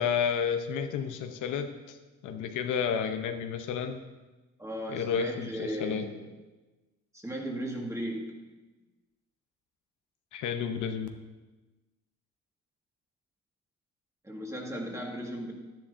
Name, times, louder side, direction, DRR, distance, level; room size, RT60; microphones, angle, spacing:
voice 1, 0.0-2.0 2.2-4.0 4.9-6.1 10.3-11.1, left 7 dB, 85° left, 6 dB, 0.8 m, -31 dB
voice 2, 4.6-6.3 7.1-8.4 14.2-15.5, right 1 dB, 10° right, 0 dB, 1.8 m, -36 dB
10.5 x 10.0 x 2.6 m, 1.2 s
cardioid pair, 90°, 30 cm